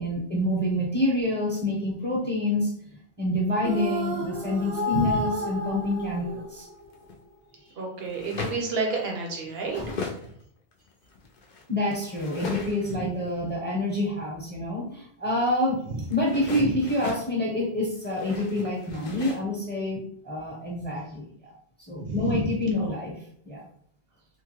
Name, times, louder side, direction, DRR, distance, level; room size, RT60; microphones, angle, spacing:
voice 1, 0.0-2.7 3.2-6.7 9.6-9.9 11.7-15.8 16.1-20.0 20.2-21.5 21.9-23.1 23.4-23.6, left 1 dB, 10° left, -4 dB, 0.7 m, -27 dB
sound 1, 3.6-7.0, left 1 dB, 45° right, 0.6 m, -31 dB
sound 2, 6.6-7.2 8.0-8.8 9.3-10.3 10.7-13.0 16.1-17.3 17.9-19.4, left 4 dB, 60° left, 0.6 m, -38 dB
voice 2, 7.8-9.8 12.9-13.0 16.6-16.7 22.0-22.4 22.8-22.9, right 3 dB, 70° right, 0 dB, 1.0 m, -30 dB
3.0 x 2.2 x 3.0 m, 0.63 s
omnidirectional pair, 1.1 m